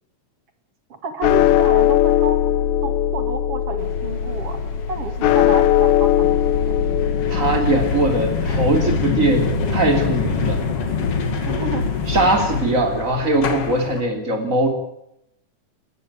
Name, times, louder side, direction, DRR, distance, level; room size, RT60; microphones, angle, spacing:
voice 1, 1.0-2.4 2.8-4.6 4.9-6.7 11.5-11.8 12.9-13.2, right 4 dB, 50° right, 7 dB, 3.0 m, -30 dB
sound 1, 1.2-11.6, left 12 dB, 75° left, 2.3 m, -21 dB
sound 2, 3.8-14.0, left 4 dB, 50° left, 2.9 m, -25 dB
voice 2, 7.3-10.6 12.1-14.7, right 2 dB, 25° right, 4 dB, 3.5 m, -20 dB
20.0 x 15.0 x 9.0 m, 0.79 s
omnidirectional pair, 3.5 m